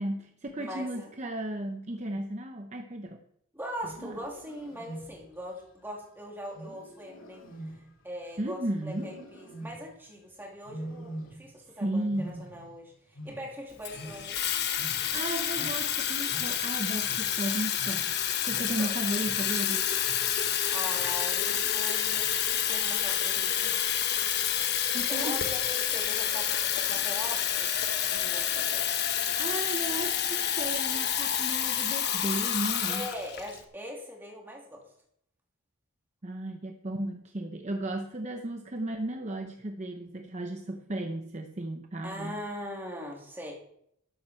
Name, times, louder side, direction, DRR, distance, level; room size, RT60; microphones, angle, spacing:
voice 1, 0.0-3.2 4.0-4.2 8.4-9.1 11.8-12.5 14.9-18.1 18.4-19.9 24.9-25.4 29.4-33.1 36.2-42.4, right 1 dB, 35° right, 5 dB, 0.8 m, -34 dB
voice 2, 0.6-1.2 3.5-7.4 7.7-14.4 18.5-19.1 20.7-23.7 25.1-27.7 28.1-28.9 32.9-34.8 42.0-43.5, equal, 10° right, -2 dB, 2.9 m, -41 dB
Wild animals, 3.7-5.5 6.5-8.4 8.9-10.1 10.7-11.7 12.0-14.5 14.7-19.7 20.0-20.5 20.9-21.3 22.1-22.5, right 1 dB, 80° left, 2.4 m, -45 dB
Water tap faucet / Fill (with liquid), 13.8-33.6, left 9 dB, 55° left, 1.1 m, -29 dB
13.0 x 9.3 x 4.4 m, 0.70 s
head